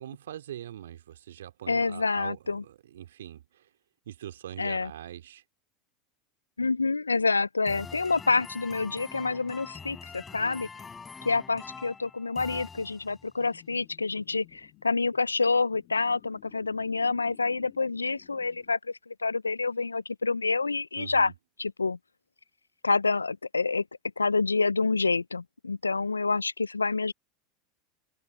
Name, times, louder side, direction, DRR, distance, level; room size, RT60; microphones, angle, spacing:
voice 1, 0.0-3.7 4.1-5.4 21.0-21.3, right 11 dB, 75° right, 2.4 m, -43 dB
voice 2, 1.7-2.6 4.6-4.9 6.6-10.7 11.3-21.3 21.6-22.0 22.8-23.8 24.2-27.1, left 4 dB, 90° left, 0.5 m, -27 dB
sound 1, 7.7-13.4, left 5 dB, 20° left, 7.2 m, -44 dB
sound 2, 13.4-18.7, left 24 dB, 55° left, 7.6 m, -55 dB
figure-of-eight pair, 80°, 0 cm